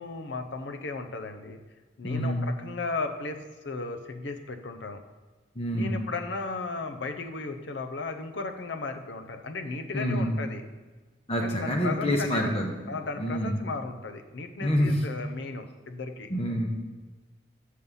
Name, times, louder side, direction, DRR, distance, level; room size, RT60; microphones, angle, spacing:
voice 1, 0.0-1.6 2.0-5.0 5.7-10.6 11.4-12.6 12.9-16.3, left 3 dB, 75° left, 7 dB, 0.6 m, -35 dB
voice 2, 2.0-2.4 5.5-5.9 9.9-10.3 11.3-13.6 14.6-15.0 16.3-16.7, equal, 30° left, 1 dB, 1.1 m, -27 dB
6.5 x 5.5 x 5.4 m, 1.3 s
head